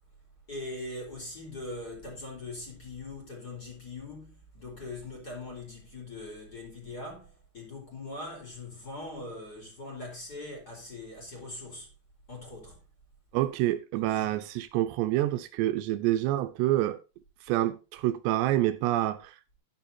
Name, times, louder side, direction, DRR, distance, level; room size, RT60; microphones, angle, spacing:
voice 1, 0.5-11.9 12.3-12.8 13.9-14.4, left 2 dB, 20° left, 4.5 m, -41 dB
voice 2, 13.3-17.0 17.5-19.6, right 14 dB, 85° right, 2.9 m, -27 dB
11.5 x 10.5 x 2.8 m
omnidirectional pair, 5.0 m